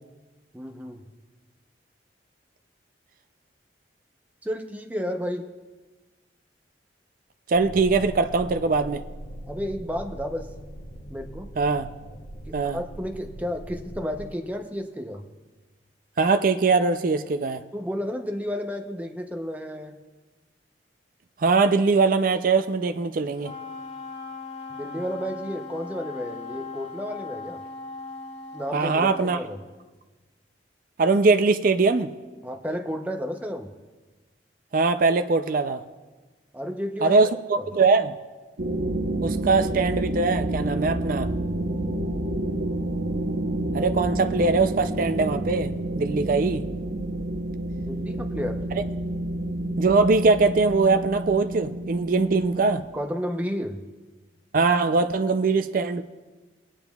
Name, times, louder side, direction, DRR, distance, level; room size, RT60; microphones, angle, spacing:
voice 1, 0.5-1.0 4.4-5.5 9.5-10.5 11.1-11.5 12.5-15.2 17.7-20.0 24.7-27.6 28.5-29.6 32.4-33.7 36.5-37.3 37.6-37.7 47.9-48.6 52.9-53.8, equal, 10° right, 4 dB, 0.7 m, -32 dB
sound 1, 7.5-14.3, equal, 40° left, 0.9 m, -41 dB
voice 2, 7.5-9.0 11.6-11.9 12.5-12.8 16.2-17.6 21.4-23.5 28.7-29.4 31.0-32.1 34.7-35.8 37.0-38.1 39.2-41.3 43.7-46.6 49.8-52.8 54.5-56.0, right 4 dB, 50° right, 8 dB, 0.4 m, -22 dB
Wind instrument woodwind instrument, 23.4-29.5, left 4 dB, 85° left, 1.5 m, -39 dB
sound 2, 38.6-52.8, right 1 dB, 80° right, 0.9 m, -29 dB
22.5 x 8.8 x 2.3 m, 1.3 s
head